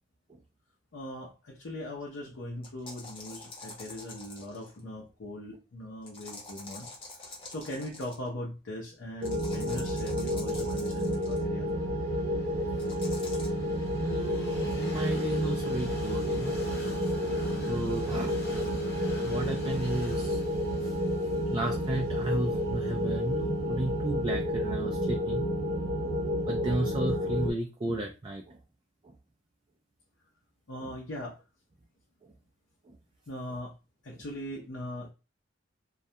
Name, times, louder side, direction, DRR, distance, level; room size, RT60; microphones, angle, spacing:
voice 1, 0.9-6.9 7.5-11.7 30.7-31.4 33.3-33.7 34.0-35.1, left 1 dB, 90° left, -3 dB, 0.6 m, -40 dB
sound 1, 2.6-4.8 6.1-8.3 9.2-11.4 12.8-13.5, left 3 dB, 30° left, 0.8 m, -46 dB
sound 2, 9.2-27.5, equal, 85° right, 0.5 m, -30 dB
Train, 10.9-26.8, left 1 dB, 60° left, 0.9 m, -46 dB
voice 2, 13.9-16.6 17.6-18.3 19.1-20.4 20.8-20.9 21.3-25.5 26.0-26.1 26.5-28.6 30.8-30.9 32.2-32.3 34.1-34.2, right 1 dB, 25° right, 2 dB, 0.3 m, -33 dB
2.3 x 2.1 x 2.7 m, 0.29 s
head